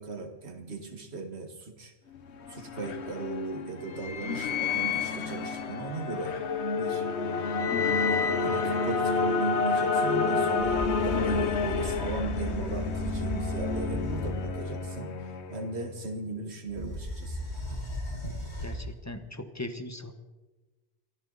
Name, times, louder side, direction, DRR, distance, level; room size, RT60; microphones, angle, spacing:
voice 1, 0.0-1.9 2.5-6.4 6.7-7.1 8.4-15.1 15.5-17.5, right 3 dB, 75° right, 4 dB, 2.1 m, -37 dB
sound 1, 2.2-15.9, left 4 dB, 80° left, 1.2 m, -29 dB
sound 2, 10.6-14.7 16.7-18.9, left 1 dB, 45° left, 5.8 m, -36 dB
voice 2, 18.6-20.2, left 1 dB, 15° left, 8 dB, 1.0 m, -39 dB
24.0 x 14.0 x 4.0 m, 1.2 s
omnidirectional pair, 1.1 m